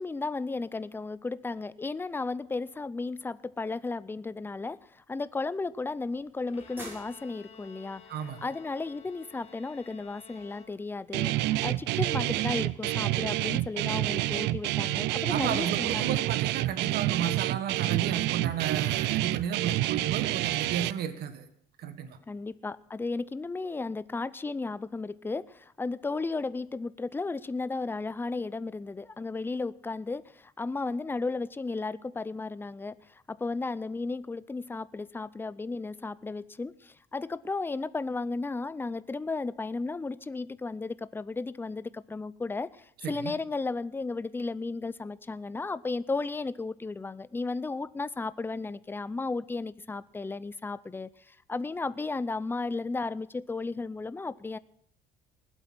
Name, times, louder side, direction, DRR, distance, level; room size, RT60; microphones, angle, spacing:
voice 1, 0.0-8.0 8.4-16.2 22.3-54.6, left 3 dB, 10° left, 17 dB, 0.5 m, -34 dB
sound 1, 5.3-16.1, right 1 dB, 10° right, 7.7 m, -56 dB
Bowed string instrument, 6.5-11.2, left 7 dB, 35° left, 2.1 m, -53 dB
voice 2, 8.1-8.4 15.3-21.5 21.8-22.2 43.0-43.3, right 8 dB, 70° right, 10 dB, 1.6 m, -33 dB
Guitar, 11.1-20.9, right 16 dB, 85° right, 0.5 m, -28 dB
19.5 x 8.1 x 7.7 m, 0.67 s
cardioid pair, 110°, 17 cm